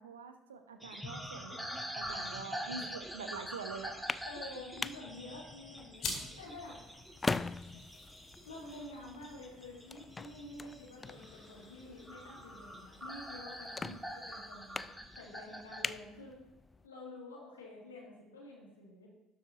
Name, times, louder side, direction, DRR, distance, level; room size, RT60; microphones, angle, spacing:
voice 1, 0.0-4.0 13.8-14.0, right 5 dB, 85° right, 8 dB, 0.6 m, -46 dB
sound 1, 0.8-15.8, equal, 5° right, 1.9 m, -45 dB
sound 2, 3.8-16.9, left 3 dB, 25° left, 0.3 m, -43 dB
voice 2, 4.3-6.8 8.4-16.4 16.8-19.1, left 2 dB, 90° left, -3 dB, 2.0 m, -49 dB
sound 3, 5.9-14.9, left 4 dB, 60° left, 2.2 m, -49 dB
12.0 x 5.0 x 3.9 m, 0.96 s
hypercardioid pair, 55°, 0 cm